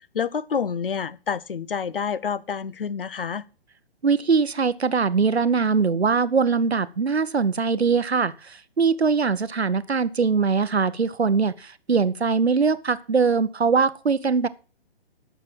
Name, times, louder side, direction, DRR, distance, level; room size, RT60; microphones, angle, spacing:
voice 1, 0.1-3.4, left 6 dB, 60° left, 0.8 m, -28 dB
voice 2, 4.0-14.5, right 5 dB, 80° right, 0.9 m, -22 dB
13.0 x 6.8 x 6.0 m
figure-of-eight pair, 135°, 31 cm